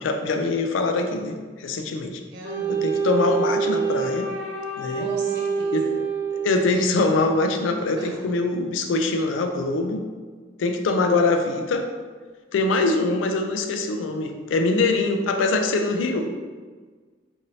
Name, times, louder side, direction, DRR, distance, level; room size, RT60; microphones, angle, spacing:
voice 1, 0.0-2.2 2.7-4.3 4.8-5.1 5.7-5.9 6.3-10.0 10.6-11.9 12.5-16.3, left 3 dB, 80° left, 5 dB, 0.3 m, -23 dB
voice 2, 2.3-2.8 4.9-6.0 8.0-8.2, right 1 dB, 60° right, -2 dB, 0.6 m, -38 dB
Wind instrument woodwind instrument, 2.4-7.0, right 5 dB, 5° right, 1.0 m, -26 dB
3.0 x 2.6 x 2.7 m, 1.5 s
head